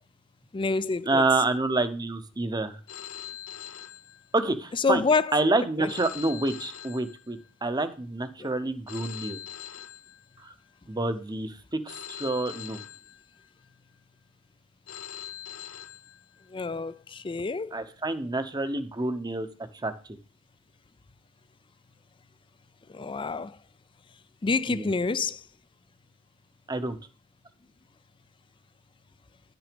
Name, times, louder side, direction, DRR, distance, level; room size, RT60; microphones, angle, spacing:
voice 1, 0.5-1.2 4.8-5.3 5.8-5.9 16.5-17.8 22.9-23.6 24.4-25.4, left 4 dB, 25° left, 0.4 m, -27 dB
voice 2, 1.0-2.8 4.3-5.0 5.3-9.4 10.4-10.5 10.9-12.8 17.7-19.5 19.8-20.2 24.7-24.9 26.7-27.0, right 2 dB, 20° right, 0.8 m, -28 dB
Telephone, 2.9-4.7 5.9-7.7 8.9-10.7 11.9-13.7 14.9-16.7, left 11 dB, 75° left, 0.8 m, -43 dB
9.9 x 6.1 x 5.1 m
head